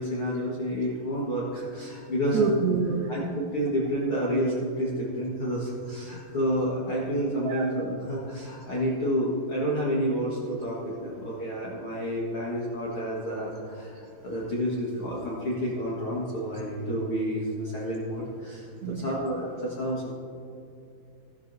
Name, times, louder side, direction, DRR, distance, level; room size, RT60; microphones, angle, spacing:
voice 1, 0.0-2.4 3.1-20.1, equal, 55° left, -6 dB, 1.6 m, -29 dB
voice 2, 2.3-3.3 7.5-7.6 18.8-19.1, right 4 dB, 75° right, 2 dB, 2.2 m, -26 dB
15.5 x 14.5 x 2.7 m, 2.5 s
omnidirectional pair, 4.8 m